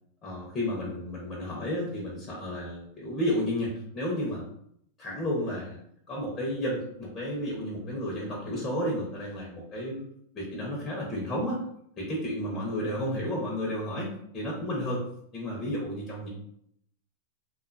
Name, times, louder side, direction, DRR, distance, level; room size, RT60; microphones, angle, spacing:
voice 1, 0.2-4.5 5.0-5.8 6.1-10.0 10.3-11.6 12.0-15.0 15.3-16.3, equal, 25° left, -3 dB, 0.8 m, -32 dB
2.5 x 2.4 x 2.5 m, 0.71 s
hypercardioid pair, 130°, 0 cm